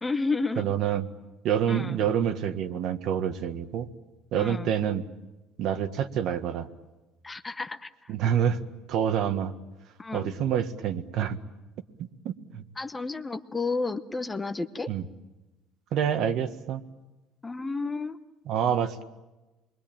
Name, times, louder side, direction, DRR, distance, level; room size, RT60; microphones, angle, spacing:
voice 1, 0.0-0.7 1.7-2.0 4.3-4.7 7.2-8.1 10.0-10.3 12.8-14.9 17.4-18.2, left 3 dB, 15° left, 9 dB, 0.9 m, -31 dB
voice 2, 0.6-1.1 1.4-3.9 4.3-5.0 5.6-6.7 8.1-8.6 8.9-9.5 10.1-11.4 12.3-12.6 14.9-15.0 15.9-16.8 18.5-19.0, right 9 dB, 55° right, 9 dB, 1.6 m, -27 dB
27.0 x 22.5 x 9.0 m, 1.1 s
cardioid pair, 145°, 0 cm